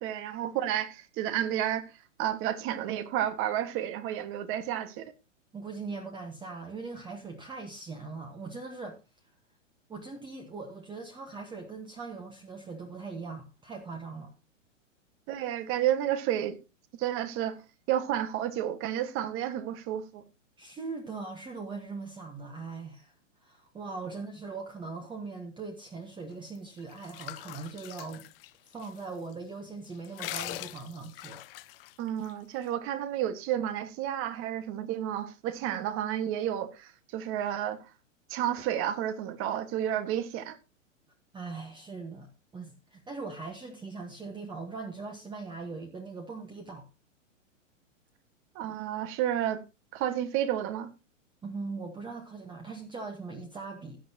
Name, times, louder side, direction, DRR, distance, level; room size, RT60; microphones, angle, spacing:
voice 1, 0.0-1.9 2.2-5.1 15.3-16.6 16.9-17.6 17.9-20.2 32.0-37.8 38.3-40.6 48.5-49.6 49.9-50.9, right 11 dB, 35° right, 1.7 m, -31 dB
voice 2, 5.5-9.0 9.9-14.3 20.6-23.1 23.4-28.2 28.7-31.4 41.3-46.9 51.4-54.0, right 4 dB, 10° right, 1.5 m, -40 dB
sound 1, 26.5-29.0 29.3-29.4 29.8-32.3, left 16 dB, 45° left, 1.0 m, -42 dB
16.0 x 10.0 x 2.9 m
hypercardioid pair, 120°, 39 cm